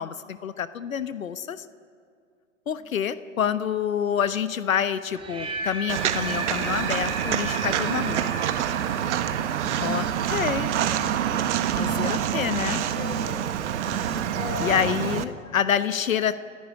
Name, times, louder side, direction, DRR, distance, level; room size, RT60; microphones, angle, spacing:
voice 1, 0.0-1.6 2.7-8.3 9.8-10.7 11.8-12.8 14.6-16.4, left 8 dB, 80° left, 12 dB, 1.2 m, -27 dB
sound 1, 5.1-11.1, right 3 dB, 15° right, 3.7 m, -35 dB
Walk footsteps, 5.9-15.2, right 10 dB, 60° right, 1.6 m, -27 dB
voice 2, 8.5-9.1 11.3-11.4 12.8-13.6 14.4-14.9, left 6 dB, 20° left, 5 dB, 3.8 m, -38 dB
sound 2, 9.6-10.3 10.6-11.2 11.7-12.2 12.7-13.3 13.8-14.2, right 5 dB, 80° right, 2.6 m, -35 dB
28.0 x 15.5 x 9.8 m, 2.3 s
hypercardioid pair, 125°, 40 cm